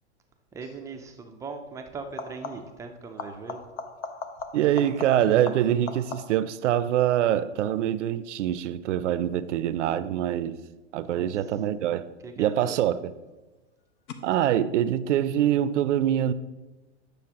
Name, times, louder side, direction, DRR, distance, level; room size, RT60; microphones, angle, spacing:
voice 1, 0.5-3.6 11.0-11.3 12.2-12.8, right 4 dB, 10° right, 0.3 m, -40 dB
sound 1, 0.6-0.9 2.0-2.8 3.2-6.6 12.0-12.6 14.1-14.2, left 5 dB, 75° left, 0.9 m, -39 dB
voice 2, 4.5-10.6 10.9-12.1 12.4-13.1 14.2-16.3, right 11 dB, 85° right, 0.5 m, -24 dB
9.2 x 6.7 x 2.8 m
hypercardioid pair, 130°, 35 cm